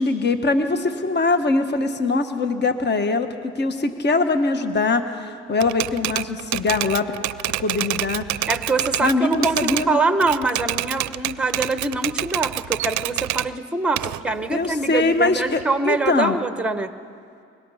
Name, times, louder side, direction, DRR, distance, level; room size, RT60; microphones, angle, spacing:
voice 1, 0.0-7.1 7.5-8.5 9.0-10.0 14.5-16.4, left 3 dB, 35° left, 8 dB, 1.3 m, -22 dB
Typewriter, 5.6-9.9 10.2-13.5 14.0-15.6, right 15 dB, 70° right, 0.5 m, -27 dB
voice 2, 8.5-16.9, right 3 dB, 5° right, 10 dB, 0.9 m, -24 dB
24.5 x 21.0 x 5.7 m, 2.4 s
cardioid pair, 90°, 30 cm